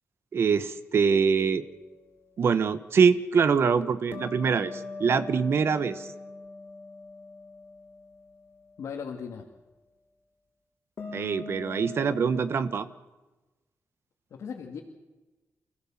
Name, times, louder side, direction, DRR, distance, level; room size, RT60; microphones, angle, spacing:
voice 1, 0.3-1.6 2.4-6.1 11.1-12.9, right 6 dB, 55° right, 12 dB, 1.4 m, -24 dB
sound 1, 4.1-8.3 11.0-12.4, left 3 dB, 45° left, 5.7 m, -41 dB
voice 2, 8.8-9.5 14.3-14.8, left 6 dB, 70° left, 0 dB, 2.5 m, -37 dB
29.5 x 16.0 x 7.5 m, 1.1 s
wide cardioid pair, 140°, 5 cm